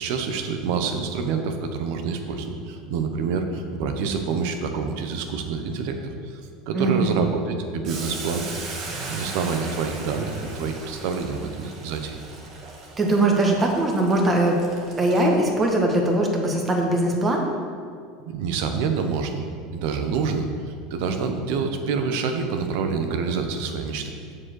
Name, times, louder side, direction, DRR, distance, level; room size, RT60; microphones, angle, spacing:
voice 1, 0.0-12.2 18.2-19.4 19.7-24.1, right 5 dB, 70° right, 6 dB, 0.9 m, -27 dB
voice 2, 6.7-7.3 13.0-14.6 15.0-17.4, right 2 dB, 25° right, 1 dB, 1.5 m, -21 dB
Boiling, 7.8-15.6, right 3 dB, 50° right, 1.7 m, -38 dB
7.4 x 4.9 x 6.5 m, 2.1 s
supercardioid pair, 110°, 0 cm